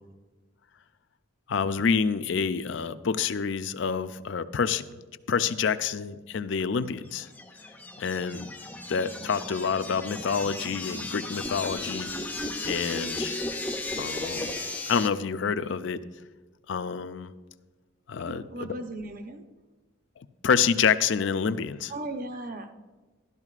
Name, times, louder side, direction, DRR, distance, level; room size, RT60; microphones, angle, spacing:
voice 1, 1.5-4.9 5.3-7.3 8.0-8.5 8.9-12.1 12.6-13.4 14.0-16.0 16.7-17.3 18.1-18.7 20.4-21.9, left 6 dB, 65° left, 13 dB, 0.4 m, -27 dB
sound 1, 7.1-15.1, left 2 dB, 10° left, 0.5 m, -35 dB
voice 2, 18.2-19.4 21.9-22.7, right 2 dB, 40° right, 6 dB, 0.8 m, -37 dB
13.0 x 12.5 x 2.4 m, 1.3 s
head